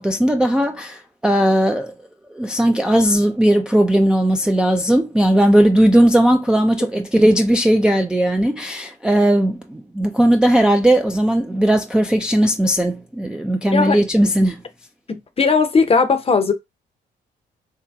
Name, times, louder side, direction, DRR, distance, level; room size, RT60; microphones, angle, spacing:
voice 1, 0.0-1.9 2.3-14.6, right 1 dB, 5° right, 0.3 m, -17 dB
voice 2, 15.4-16.5, left 4 dB, 30° left, 0.7 m, -16 dB
2.8 x 2.8 x 3.3 m
cardioid pair, 90°, 20 cm